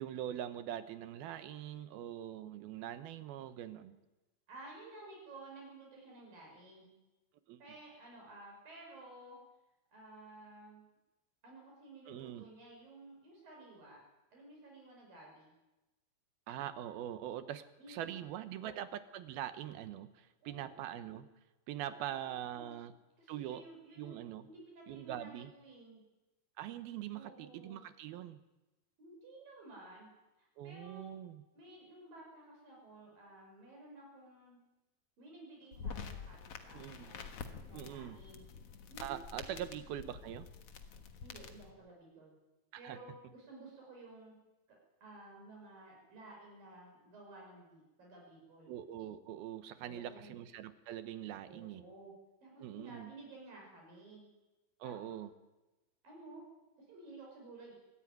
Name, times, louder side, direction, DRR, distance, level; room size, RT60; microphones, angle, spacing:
voice 1, 0.0-4.0 7.5-7.6 12.1-12.4 16.5-21.3 21.7-22.9 23.3-23.7 24.0-24.5 24.9-25.5 26.6-28.4 30.6-31.4 36.7-37.1 37.7-38.2 39.0-40.5 42.8-43.0 48.7-51.8 52.6-53.1 54.8-55.3, right 11 dB, 80° right, 11 dB, 2.9 m, -43 dB
voice 2, 4.5-7.0 7.6-9.4 9.9-10.9 11.4-14.0 14.3-15.5 17.8-18.1 18.6-18.7 20.4-20.8 21.9-22.8 23.2-26.0 27.1-27.8 29.0-30.1 30.4-31.1 31.5-34.6 35.2-37.3 37.7-38.5 38.9-39.1 39.4-39.6 41.2-42.4 42.8-44.4 45.0-48.8 49.8-50.4 51.5-52.1 52.4-54.3 54.8-55.2 56.0-56.4 56.9-57.7, right 2 dB, 65° right, -1 dB, 7.2 m, -54 dB
sound 1, 35.7-41.7, left 6 dB, 55° left, 1.9 m, -47 dB
23.0 x 14.5 x 9.4 m, 1.0 s
omnidirectional pair, 4.4 m